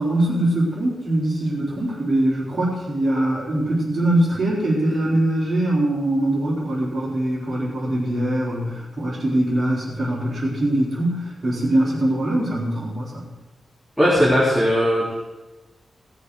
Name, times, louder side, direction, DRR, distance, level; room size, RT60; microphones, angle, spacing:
voice 1, 0.0-13.3, right 1 dB, 35° right, -10 dB, 4.4 m, -22 dB
voice 2, 14.0-15.1, equal, ahead, -8 dB, 3.7 m, -18 dB
17.5 x 6.9 x 6.5 m, 1.1 s
wide cardioid pair, 130°, 0 cm